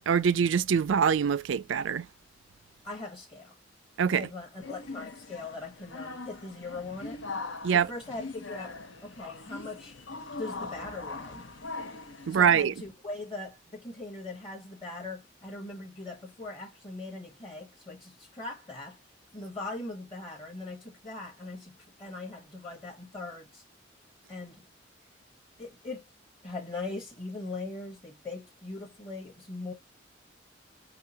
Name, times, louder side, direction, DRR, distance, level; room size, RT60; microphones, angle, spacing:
voice 1, 0.1-2.1 4.0-4.3 7.6-7.9 12.3-12.7, right 7 dB, 75° right, 0.4 m, -24 dB
voice 2, 2.8-3.5 4.1-7.2 7.7-9.9 10.4-11.4 12.3-19.0 19.3-23.6 24.3-24.6 25.6-26.0 26.4-29.7, left 2 dB, 25° left, 1.2 m, -40 dB
sound 1, 4.6-12.6, left 3 dB, 80° left, 1.0 m, -41 dB
5.6 x 2.4 x 2.8 m
head